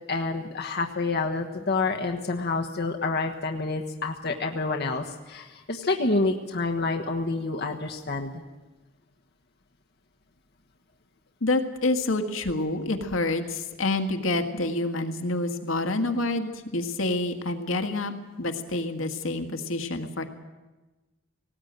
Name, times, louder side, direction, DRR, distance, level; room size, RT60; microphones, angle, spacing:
voice 1, 0.1-8.4, left 3 dB, 55° left, 2 dB, 1.4 m, -28 dB
voice 2, 11.4-18.1 18.4-20.2, left 2 dB, 80° left, 6 dB, 1.8 m, -27 dB
19.0 x 17.5 x 9.0 m, 1.2 s
head